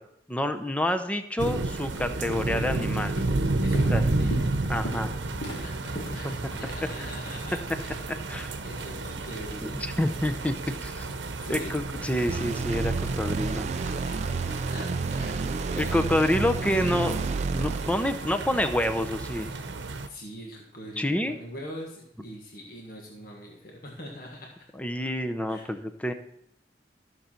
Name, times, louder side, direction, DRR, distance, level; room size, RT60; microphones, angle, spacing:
voice 1, 0.3-3.2 3.9-4.0 4.7-5.1 6.2-6.4 8.3-8.6 9.6-10.5 10.8-11.1 11.5-13.7 15.8-19.5 21.0-21.4 24.8-26.1, left 1 dB, 10° left, 9 dB, 0.6 m, -28 dB
sound 1, 1.4-20.1, right 2 dB, 85° right, 0.8 m, -32 dB
Walk footsteps, 2.0-2.2 2.6-2.9 3.2-7.8, left 1 dB, 75° left, 1.7 m, -40 dB
voice 2, 3.6-4.4 5.6-8.0 8.6-9.8 11.4-11.7 13.0-14.4 14.7-15.4 15.7-16.2 20.1-24.7 25.5-25.8, left 1 dB, 55° left, 0 dB, 1.6 m, -42 dB
sound 2, 12.3-18.7, right 4 dB, 40° right, 0.3 m, -31 dB
14.0 x 6.8 x 4.4 m, 0.77 s
head